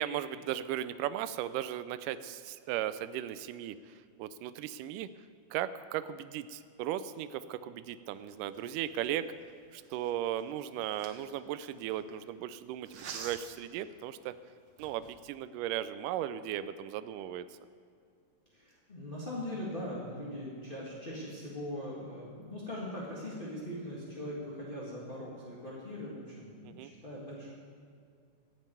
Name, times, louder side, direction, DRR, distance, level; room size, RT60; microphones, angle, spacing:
voice 1, 0.0-5.1 5.5-9.3 9.7-14.4 14.8-17.5 26.6-26.9, right 11 dB, 85° right, 13 dB, 1.9 m, -36 dB
sound 1, 8.2-12.1 12.9-13.6 14.2-14.3 14.7-15.2, right 5 dB, 60° right, 1.6 m, -48 dB
voice 2, 18.5-27.5, left 1 dB, 30° left, -6 dB, 1.0 m, -41 dB
14.5 x 7.4 x 9.1 m, 2.3 s
omnidirectional pair, 4.2 m